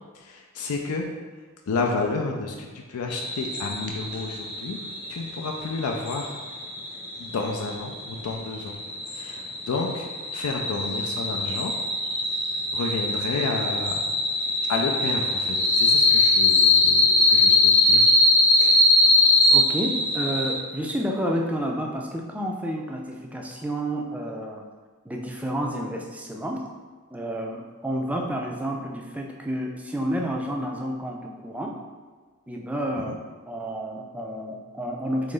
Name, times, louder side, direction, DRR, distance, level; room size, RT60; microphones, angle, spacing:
voice 1, 0.1-1.1 1.7-4.8 5.1-6.3 7.2-8.8 9.1-10.1 10.3-11.7 12.3-12.4 12.7-14.0 14.7-18.1 33.1-33.2, left 3 dB, 90° left, 1 dB, 0.4 m, -30 dB
sound 1, 3.1-20.5, left 2 dB, 45° left, 1.0 m, -22 dB
voice 2, 19.5-24.7 25.1-26.7 27.1-31.8 32.5-33.1 33.5-35.3, equal, 5° right, 0 dB, 0.3 m, -30 dB
3.9 x 3.1 x 3.8 m, 1.5 s
head